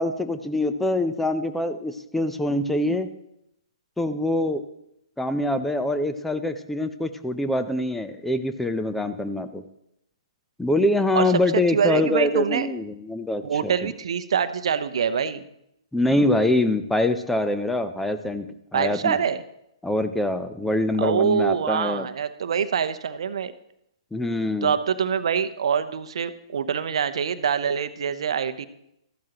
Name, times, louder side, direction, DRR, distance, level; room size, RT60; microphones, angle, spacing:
voice 1, 0.0-3.1 4.0-4.6 5.2-9.6 10.6-13.4 13.8-13.9 15.9-19.2 19.8-22.1 24.1-24.7, left 1 dB, 5° left, 9 dB, 0.6 m, -24 dB
voice 2, 11.1-12.7 13.4-15.4 18.7-19.4 21.0-23.5 24.6-28.7, right 7 dB, 60° right, 12 dB, 0.7 m, -25 dB
14.0 x 12.0 x 3.0 m, 0.78 s
figure-of-eight pair, 120°, 3 cm